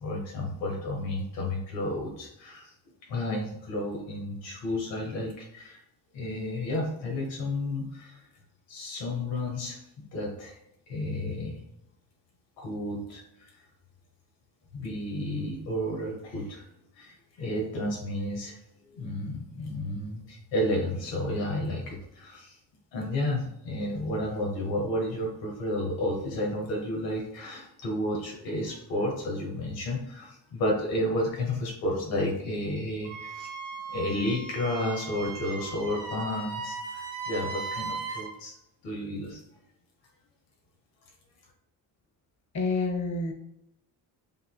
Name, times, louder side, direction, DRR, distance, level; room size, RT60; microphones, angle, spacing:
voice 1, 0.0-2.7 3.1-5.8 6.1-8.2 8.7-10.6 10.9-11.6 12.6-13.5 14.7-16.6 17.0-18.6 18.9-22.6 22.9-33.5 33.9-38.5 38.8-39.4, left 1 dB, 90° left, -1 dB, 1.1 m, -32 dB
Wind instrument woodwind instrument, 33.0-38.3, right 4 dB, 85° right, 1.0 m, -37 dB
voice 2, 42.5-43.3, left 3 dB, 35° left, 4 dB, 1.0 m, -28 dB
6.8 x 2.7 x 2.3 m, 0.81 s
hypercardioid pair, 45°, 49 cm